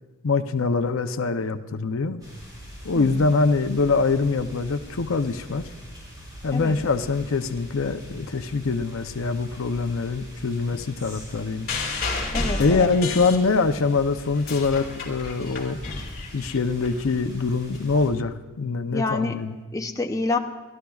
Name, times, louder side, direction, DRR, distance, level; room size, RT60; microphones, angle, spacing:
voice 1, 0.2-2.2 2.8-5.6 6.4-11.7 12.6-15.8 16.3-19.6, left 4 dB, 75° left, 10 dB, 0.6 m, -24 dB
sound 1, 2.2-18.1, equal, 20° right, 5.5 m, -43 dB
voice 2, 2.9-3.3 6.5-6.8 12.3-12.9 18.9-19.5 19.7-20.4, left 2 dB, 15° left, 3 dB, 0.6 m, -27 dB
sound 2, 11.7-13.9 14.3-16.9 17.7-17.8, left 3 dB, 45° left, 2.4 m, -31 dB
28.5 x 13.0 x 2.4 m, 1.2 s
head